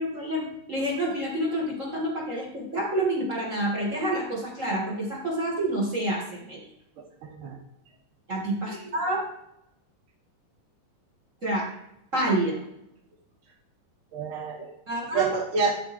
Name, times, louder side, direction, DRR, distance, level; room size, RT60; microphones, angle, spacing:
voice 1, 0.0-6.6 8.3-9.2 11.4-11.7 12.1-12.6 14.9-15.4, right 1 dB, 30° right, -2 dB, 1.9 m, -28 dB
voice 2, 7.2-7.6 8.7-8.9 14.1-14.7 15.1-15.7, right 5 dB, 70° right, -3 dB, 3.9 m, -28 dB
12.0 x 5.5 x 4.3 m, 0.81 s
omnidirectional pair, 3.8 m